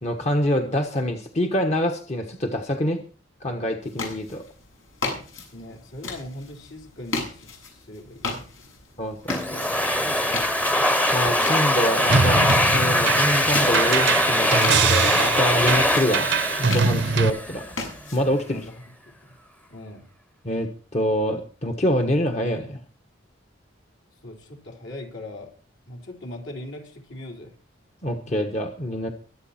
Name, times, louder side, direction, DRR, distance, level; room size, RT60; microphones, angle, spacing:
voice 1, 0.0-3.0 3.4-4.4 9.0-9.7 11.1-12.4 12.7-16.3 16.6-17.6 18.1-18.7 20.4-22.8 28.0-29.1, equal, 35° left, 4 dB, 1.3 m, -25 dB
sound 1, 3.8-18.7, left 3 dB, 85° left, 7.5 m, -36 dB
voice 2, 5.5-8.4 18.4-19.3 19.7-20.0 24.2-25.5 25.9-27.5, left 1 dB, 65° left, 1 dB, 4.1 m, -40 dB
Domestic sounds home sounds, 9.3-17.7, left 1 dB, 10° left, 1.0 m, -22 dB
sound 2, 12.1-17.3, right 5 dB, 65° right, 0.9 m, -23 dB
23.5 x 8.5 x 4.4 m, 0.41 s
head